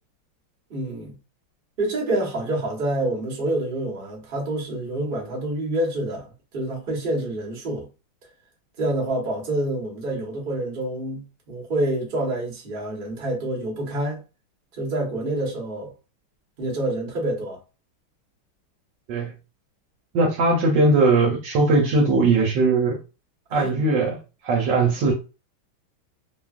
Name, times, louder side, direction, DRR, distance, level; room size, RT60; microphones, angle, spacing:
voice 1, 0.7-1.1 1.8-7.9 8.8-14.2 14.8-15.9 16.6-17.6 23.5-23.8, right 1 dB, 40° right, 0.8 m, -27 dB
voice 2, 20.1-23.0 23.5-24.2 24.4-25.1, right 3 dB, 70° right, 1.2 m, -19 dB
3.2 x 2.3 x 2.3 m
omnidirectional pair, 2.3 m